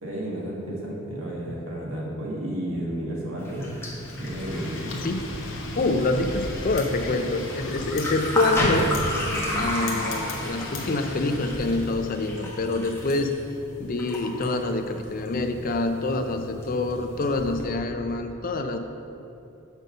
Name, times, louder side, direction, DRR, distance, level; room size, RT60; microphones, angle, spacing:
voice 1, 0.0-3.7 4.2-4.9, right 1 dB, 80° right, -4 dB, 1.8 m, -32 dB
sound 1, 3.4-17.6, left 1 dB, 15° left, 1.1 m, -33 dB
Wind, 3.9-12.0, left 2 dB, 70° left, 1.0 m, -36 dB
voice 2, 5.8-8.9 9.5-13.4 13.8-18.8, left 2 dB, 45° left, 7 dB, 0.5 m, -26 dB
6.3 x 5.1 x 6.5 m, 2.7 s
head